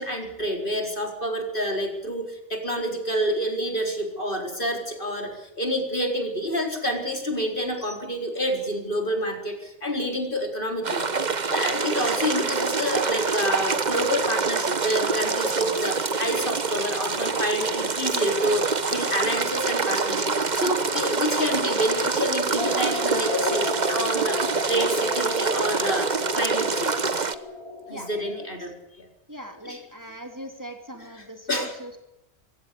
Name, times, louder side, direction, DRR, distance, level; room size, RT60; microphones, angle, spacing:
voice 1, 0.0-26.1 26.3-27.0 27.9-29.1 29.6-29.8 31.5-31.7, equal, 50° left, 3 dB, 4.5 m, -28 dB
sound 1, 10.8-27.3, right 4 dB, 40° right, 1.3 m, -26 dB
sound 2, 22.6-28.5, left 2 dB, 30° left, 6.4 m, -34 dB
voice 2, 29.3-32.0, right 1 dB, 15° right, 4 dB, 3.0 m, -39 dB
25.5 x 16.5 x 8.5 m, 0.91 s
omnidirectional pair, 1.1 m